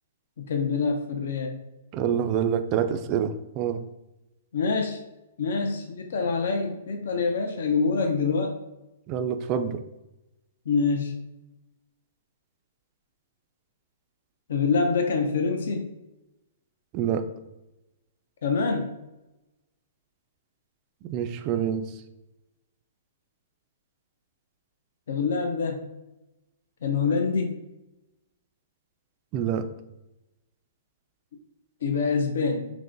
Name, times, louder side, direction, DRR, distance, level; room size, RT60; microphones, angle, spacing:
voice 1, 0.4-1.6 4.5-5.0 5.4-8.6 10.7-11.1 14.5-15.9 18.4-18.9 25.1-25.9 26.8-27.5 31.8-32.7, left 4 dB, 70° left, 4 dB, 0.5 m, -25 dB
voice 2, 1.9-3.8 9.1-9.8 16.9-17.2 21.1-21.9 29.3-29.6, right 8 dB, 30° right, 8 dB, 0.3 m, -26 dB
5.9 x 2.1 x 2.6 m, 0.94 s
hypercardioid pair, 155°, 0 cm